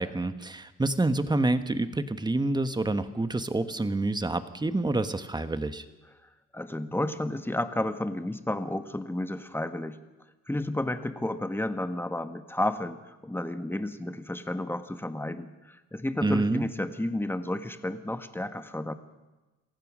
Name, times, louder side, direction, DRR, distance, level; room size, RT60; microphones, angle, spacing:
voice 1, 0.0-5.8 16.2-16.6, right 2 dB, 15° right, 10 dB, 1.3 m, -27 dB
voice 2, 6.5-10.0 10.5-18.9, left 1 dB, 5° left, 9 dB, 1.5 m, -32 dB
27.0 x 15.5 x 6.3 m, 1.1 s
cardioid pair, 90°, 30 cm